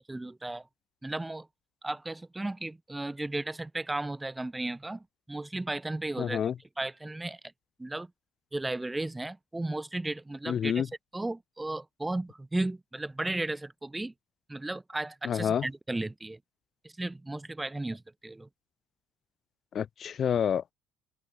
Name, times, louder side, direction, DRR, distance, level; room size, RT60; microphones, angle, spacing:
voice 1, 0.1-0.7 1.0-1.5 1.8-6.4 6.8-7.4 7.8-8.1 8.5-14.1 14.5-16.4 16.8-18.5, right 2 dB, 10° right, 1.2 m, -35 dB
voice 2, 6.2-6.5 10.5-10.9 15.2-15.6 19.7-20.7, left 8 dB, 45° left, 1.7 m, -28 dB
open air
hypercardioid pair, 75°, 0 cm